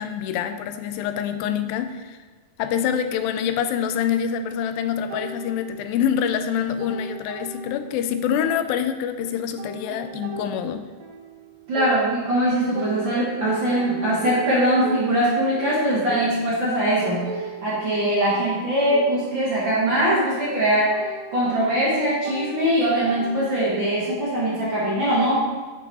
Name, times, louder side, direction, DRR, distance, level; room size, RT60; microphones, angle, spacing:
voice 1, 0.0-2.2 2.6-10.9, left 8 dB, 85° left, 9 dB, 2.3 m, -26 dB
sound 1, 5.1-6.2 6.5-8.1 8.4-12.4 12.8-23.8, right 5 dB, 75° right, 2.9 m, -38 dB
voice 2, 11.7-21.0 21.3-25.4, right 1 dB, 45° right, -7 dB, 1.9 m, -22 dB
9.4 x 5.3 x 4.2 m, 1.4 s
omnidirectional pair, 4.1 m